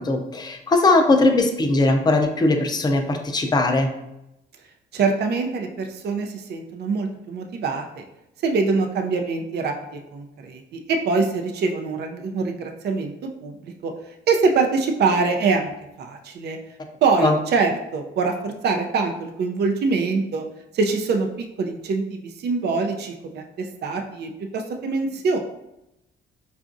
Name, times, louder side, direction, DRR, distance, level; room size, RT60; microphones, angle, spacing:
voice 1, 0.0-3.9 17.2-17.3, left 2 dB, 20° left, 4 dB, 0.5 m, -19 dB
voice 2, 4.9-8.0 8.4-13.9 14.3-15.7 16.0-16.6 17.0-20.5 20.7-21.3 21.6-25.4, right 4 dB, 55° right, 4 dB, 0.5 m, -24 dB
4.6 x 2.4 x 2.5 m, 0.88 s
cardioid pair, 90°, 20 cm